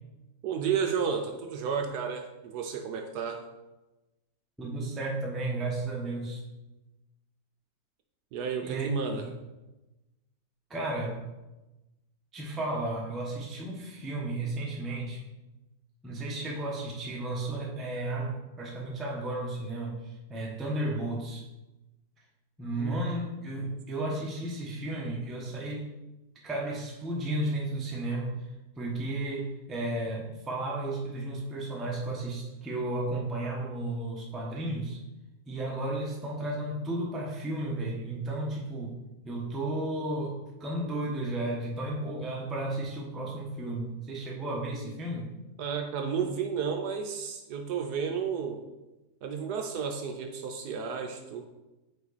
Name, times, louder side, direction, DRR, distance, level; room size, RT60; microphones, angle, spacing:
voice 1, 0.4-3.4 8.3-9.3 22.8-23.0 45.6-48.6 49.2-51.4, right 6 dB, 70° right, 4 dB, 1.1 m, -32 dB
voice 2, 4.6-6.4 8.6-9.2 10.7-11.2 12.3-15.3 16.0-21.5 22.6-25.9 26.4-28.3 28.8-35.0 35.5-39.0 39.2-45.3, right 2 dB, ahead, -3 dB, 0.5 m, -33 dB
5.5 x 4.4 x 4.0 m, 1.0 s
omnidirectional pair, 1.9 m